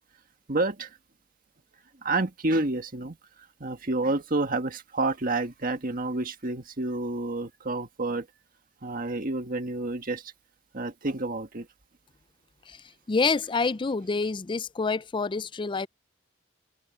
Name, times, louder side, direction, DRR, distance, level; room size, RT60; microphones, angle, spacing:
voice 1, 0.5-0.9 2.0-3.2 3.6-8.3 8.8-10.2 10.7-11.7, right 2 dB, 50° right, 1.7 m, -29 dB
voice 2, 12.7-15.9, left 4 dB, 25° left, 0.4 m, -27 dB
open air
head